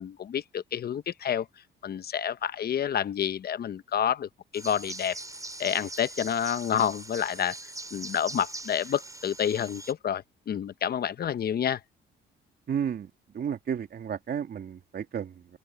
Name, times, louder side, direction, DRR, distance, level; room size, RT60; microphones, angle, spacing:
voice 1, 0.0-1.5 1.8-5.2 5.6-7.6 7.9-11.8, left 9 dB, 50° left, 0.9 m, -29 dB
sound 1, 4.5-9.9, right 2 dB, 15° right, 5.6 m, -41 dB
voice 2, 12.7-15.6, right 8 dB, 55° right, 2.4 m, -33 dB
open air
cardioid pair, 90°, 20 cm